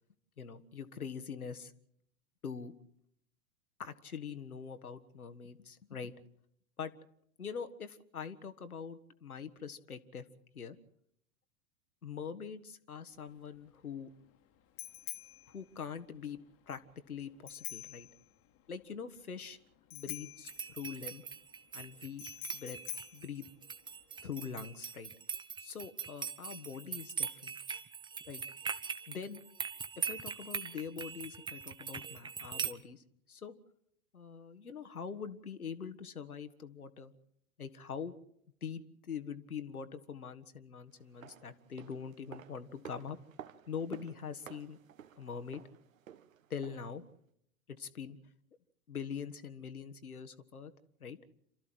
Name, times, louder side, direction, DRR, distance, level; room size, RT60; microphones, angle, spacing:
voice 1, 0.4-1.7 2.4-2.7 3.8-6.1 6.8-6.9 7.4-10.2 10.5-10.8 12.0-14.1 15.5-16.4 16.7-16.8 17.1-18.1 18.7-19.6 19.9-21.2 21.7-22.2 22.5-22.8 23.1-23.5 24.2-25.1 25.6-27.6 28.3-28.4 29.1-29.4 30.0-33.5 34.1-37.1 37.6-38.1 38.6-43.2 43.7-44.8 45.2-45.6 46.5-47.0 47.7-48.2 48.9-50.7 51.0-51.2, left 6 dB, 75° left, 9 dB, 1.6 m, -43 dB
Bicycle bell, 13.1-24.3, left 13 dB, 30° left, 1.6 m, -49 dB
sound 1, 20.5-32.7, right 6 dB, 10° right, 0.9 m, -41 dB
sound 2, 41.0-47.0 47.3-47.4, right 9 dB, 65° right, 1.4 m, -53 dB
27.5 x 13.5 x 7.8 m, 0.72 s
figure-of-eight pair, 100°, 43 cm